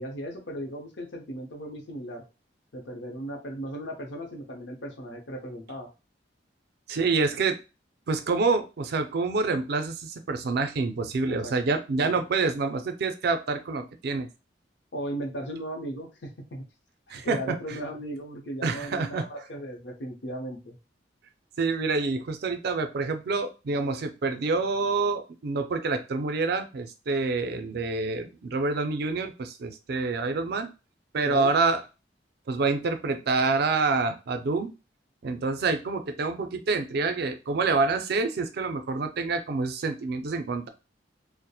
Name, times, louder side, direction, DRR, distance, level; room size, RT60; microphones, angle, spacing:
voice 1, 0.0-2.2 2.7-5.9 11.3-11.5 12.0-12.2 14.9-16.6 17.1-20.8 31.2-31.5, right 1 dB, 70° left, 2 dB, 0.7 m, -37 dB
voice 2, 6.9-7.6 8.1-14.3 17.1-17.8 18.6-19.3 21.6-30.7 31.1-31.8 32.5-34.7 35.2-40.7, right 3 dB, 60° right, 8 dB, 0.4 m, -27 dB
2.8 x 2.0 x 2.3 m, 0.30 s
head